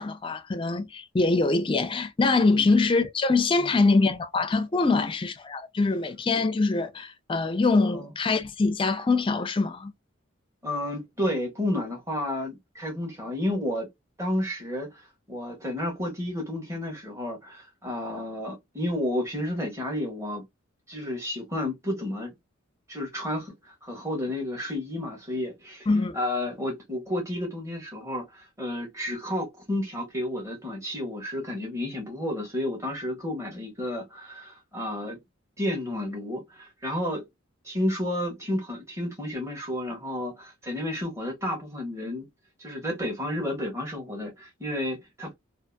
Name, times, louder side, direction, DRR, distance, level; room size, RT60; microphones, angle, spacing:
voice 1, 0.0-9.9 25.9-26.2, left 3 dB, 25° left, 0.4 m, -24 dB
voice 2, 10.6-13.9 14.2-20.4 20.9-22.3 22.9-25.9 26.1-35.2 35.6-37.2 37.6-42.3 42.6-45.3, left 1 dB, 15° right, 1.0 m, -31 dB
2.7 x 2.5 x 2.2 m
head